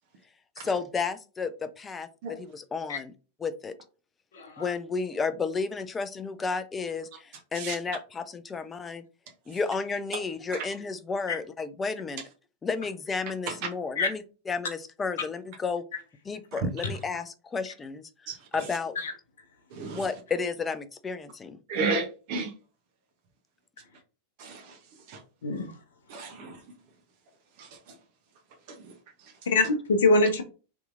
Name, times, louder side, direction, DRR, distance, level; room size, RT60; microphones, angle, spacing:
voice 1, 0.6-3.1 3.4-3.7 4.6-9.0 9.5-12.2 12.6-15.8 16.3-18.1 18.5-19.0 19.8-21.6, left 4 dB, 15° left, 11 dB, 0.4 m, -32 dB
voice 2, 4.3-4.6 14.0-14.1 19.0-19.1 25.4-25.7 29.5-30.4, left 2 dB, 60° left, 7 dB, 0.7 m, -23 dB
voice 3, 18.3-18.7 19.7-20.1 21.7-22.5 24.4-24.8 25.1-25.2 26.1-26.6 27.6-27.8 28.7-28.9 29.2-29.3, right 4 dB, 45° right, 3 dB, 0.7 m, -33 dB
3.5 x 2.9 x 2.4 m, 0.34 s
figure-of-eight pair, 90°, 0 cm